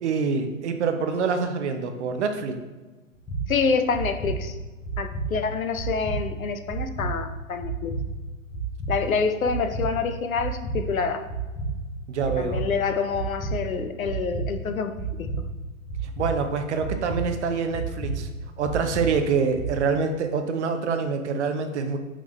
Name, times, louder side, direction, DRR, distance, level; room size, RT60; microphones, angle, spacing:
voice 1, 0.0-2.5 12.1-12.6 16.0-18.3 18.6-22.0, right 5 dB, 60° right, 7 dB, 0.6 m, -26 dB
sound 1, 3.3-3.4 3.9-4.3 4.8-5.2 5.7-6.1 6.7-7.1 7.6-8.0 8.5-8.9 9.4-9.8 10.3-10.8 11.3-11.7 12.2-12.6 13.1-13.5 14.0-14.4 14.9-15.3 15.9-16.3 16.8-17.2 17.7-18.1 18.6-19.0 19.5-19.6, right 1 dB, 10° left, 0.8 m, -32 dB
voice 2, 3.5-4.5 5.0-7.9 8.9-11.3 12.3-14.9 15.2-15.3, left 5 dB, 90° left, 8 dB, 0.5 m, -27 dB
3.8 x 3.5 x 3.2 m, 1.2 s
figure-of-eight pair, 110°, 40 cm